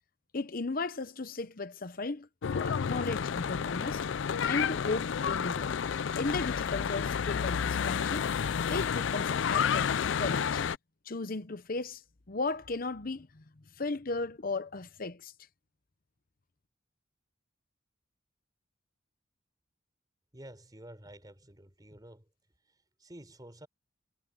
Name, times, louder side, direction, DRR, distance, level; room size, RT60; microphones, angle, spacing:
voice 1, 0.3-2.3 2.5-4.0 4.5-5.7 6.2-8.3 8.7-10.6 11.1-12.0 12.3-15.3, left 3 dB, 50° left, 0.9 m, -36 dB
Church bell / Traffic noise roadway noise, 2.4-10.8, left 7 dB, 75° left, 0.4 m, -30 dB
voice 2, 20.3-22.3 22.6-23.7, right 1 dB, 20° right, 4.2 m, -51 dB
head